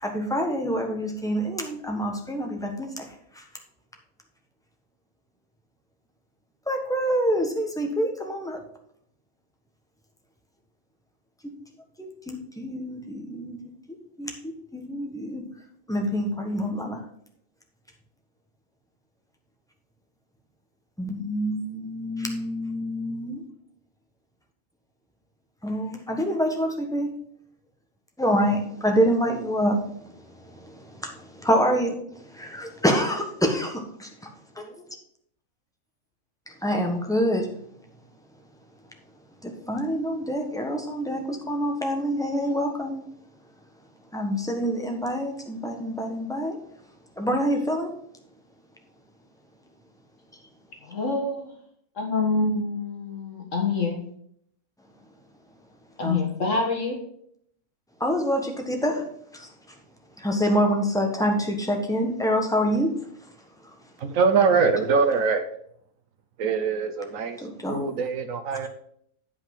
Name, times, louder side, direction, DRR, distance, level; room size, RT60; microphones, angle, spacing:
voice 1, 0.0-3.1 3.4-3.5 6.7-8.6 12.0-13.6 14.2-14.3 14.7-15.4 15.9-17.0 21.0-23.4 25.6-27.1 28.2-29.9 30.5-31.9 32.3-34.1 34.6-34.7 36.6-37.5 39.4-43.0 44.1-46.6 47.2-47.9 56.0-56.2 58.0-59.1 59.3-59.5 60.2-62.9 67.4-67.8, equal, 5° left, 2 dB, 1.2 m, -26 dB
voice 2, 50.9-51.5 52.0-54.0 56.0-57.0, left 3 dB, 55° left, 1 dB, 1.7 m, -26 dB
voice 3, 64.0-65.5 66.4-67.4 67.7-68.7, right 5 dB, 65° right, 8 dB, 1.3 m, -23 dB
8.9 x 5.4 x 5.4 m, 0.67 s
omnidirectional pair, 1.5 m